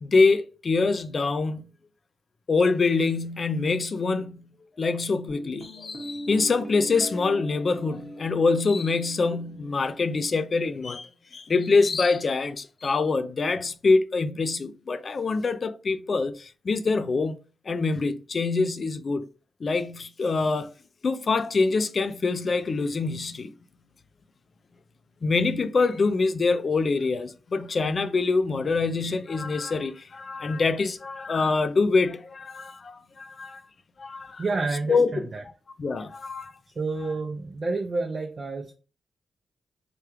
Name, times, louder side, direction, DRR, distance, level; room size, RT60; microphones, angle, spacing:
voice 1, 0.0-1.6 2.5-4.5 4.8-17.3 17.7-19.3 19.6-20.7 21.0-23.5 25.2-33.6 34.0-34.4 34.9-35.3 35.8-36.5, left 4 dB, 50° left, 0.3 m, -25 dB
Guitar, 5.3-10.3, equal, 10° right, 1.0 m, -40 dB
voice 2, 34.4-35.4 36.8-38.7, right 3 dB, 45° right, 0.5 m, -29 dB
3.4 x 2.3 x 3.0 m
cardioid pair, 65°, 0 cm